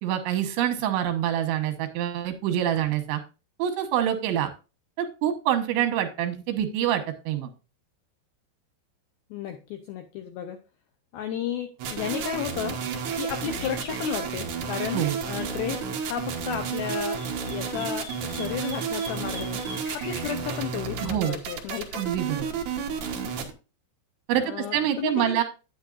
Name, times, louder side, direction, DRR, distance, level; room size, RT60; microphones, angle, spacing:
voice 1, 0.0-3.2 3.6-4.5 5.0-7.5 14.9-15.2 21.0-21.4 22.0-22.5 24.3-25.4, right 10 dB, 85° right, 6 dB, 3.6 m, -26 dB
voice 2, 9.3-10.6 11.1-12.8 13.2-17.2 17.4-19.6 19.9-22.0 24.4-25.4, left 9 dB, 80° left, 6 dB, 2.1 m, -33 dB
sound 1, 11.8-23.5, right 6 dB, 65° right, 1.9 m, -31 dB
sound 2, 13.4-14.2 16.6-20.4, left 1 dB, 45° left, 2.9 m, -42 dB
9.6 x 9.6 x 2.5 m, 0.31 s
omnidirectional pair, 5.3 m